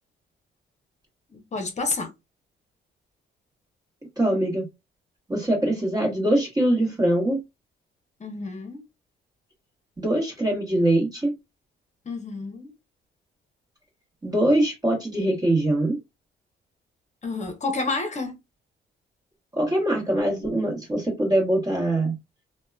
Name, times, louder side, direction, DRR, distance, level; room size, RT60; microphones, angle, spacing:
voice 1, 1.3-2.1 8.2-8.8 12.0-12.7 17.2-18.4, left 3 dB, 35° left, 0.8 m, -30 dB
voice 2, 4.2-4.7 5.3-7.4 10.0-11.4 14.2-16.0 19.5-22.1, right 1 dB, 20° right, 1.2 m, -23 dB
2.8 x 2.2 x 2.3 m
cardioid pair, 90°, 20 cm